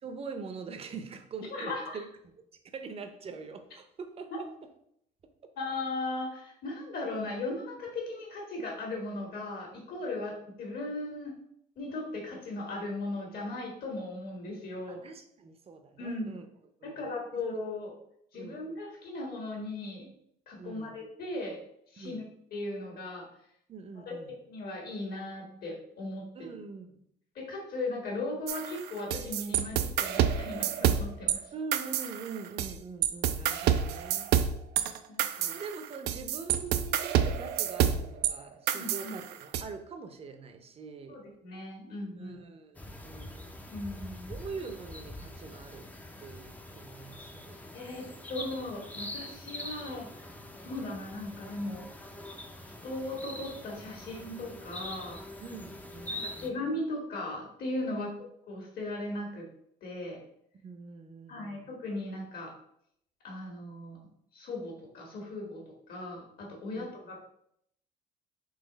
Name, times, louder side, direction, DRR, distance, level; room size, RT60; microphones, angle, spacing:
voice 1, 0.0-2.1 2.7-4.5 14.9-16.5 16.8-17.1 17.3-17.4 18.3-18.6 20.6-21.0 22.0-22.2 23.7-24.3 26.3-27.0 31.5-34.3 35.5-41.2 42.2-43.5 44.3-45.9 46.2-47.6 48.1-48.2 50.6-50.7 55.4-56.5 57.9-58.1 60.5-61.7 66.7-66.9, right 4 dB, 35° right, 7 dB, 0.6 m, -43 dB
voice 2, 1.5-2.0 5.6-11.3 11.8-15.0 16.0-16.3 16.8-17.9 18.3-20.1 20.5-21.6 21.9-22.2 22.5-23.3 24.1-24.2 24.5-26.5 27.4-31.5 35.1-35.6 38.7-39.1 41.1-42.4 43.7-44.3 47.7-50.2 50.6-52.0 52.6-55.2 56.1-58.1 58.5-59.5 59.8-60.2 61.3-62.5 63.2-64.0 64.3-67.2, left 2 dB, 65° left, 0 dB, 1.6 m, -37 dB
sound 1, 28.5-31.4 31.7-32.7 33.0-38.3 38.7-39.6, right 10 dB, 80° right, 0.4 m, -28 dB
sound 2, 42.8-56.5, left 1 dB, 10° left, 0.5 m, -44 dB
4.0 x 2.9 x 4.0 m, 0.72 s
cardioid pair, 110°, 17 cm